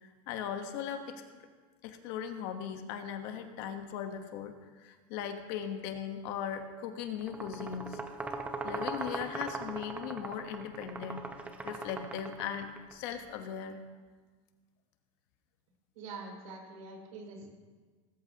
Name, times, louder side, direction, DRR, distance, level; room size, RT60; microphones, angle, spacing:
voice 1, 0.0-1.5 1.8-8.0 8.6-11.2 11.6-13.8, left 8 dB, 45° left, 7 dB, 1.1 m, -39 dB
sound 1, 7.2-12.9, right 3 dB, 10° right, 0.6 m, -40 dB
voice 2, 15.9-17.5, right 3 dB, 85° right, 0 dB, 5.0 m, -45 dB
19.5 x 13.5 x 2.9 m, 1.5 s
supercardioid pair, 180°, 18 cm